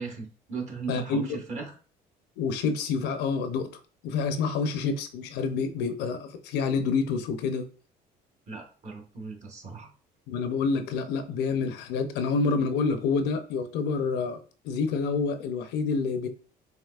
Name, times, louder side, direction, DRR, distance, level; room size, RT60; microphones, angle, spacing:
voice 1, 0.0-1.7 8.5-9.9, right 4 dB, 45° right, 1.3 m, -37 dB
voice 2, 0.9-1.4 2.4-3.7 4.0-7.7 10.3-14.4 14.6-16.3, left 4 dB, 90° left, 0.6 m, -28 dB
5.5 x 3.1 x 2.4 m
cardioid pair, 110°, 17 cm